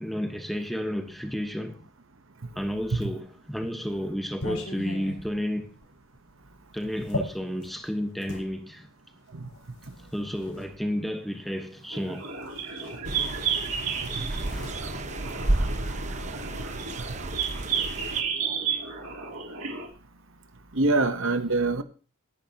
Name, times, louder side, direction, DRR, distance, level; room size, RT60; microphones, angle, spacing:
voice 1, 0.0-1.9 2.5-5.7 6.7-8.9 10.1-12.3 14.3-15.0, equal, ahead, 1.2 m, -32 dB
sound 1, 3.1-8.5 9.4-10.7 11.9-12.1 12.4-13.5 13.8-16.0, left 1 dB, 85° left, 5.6 m, -39 dB
sound 2, 11.9-19.9, right 6 dB, 90° right, 3.1 m, -32 dB
sound 3, 13.0-18.2, right 2 dB, 35° right, 0.9 m, -32 dB
voice 2, 20.7-21.8, right 2 dB, 65° right, 1.0 m, -24 dB
18.5 x 10.5 x 2.9 m
head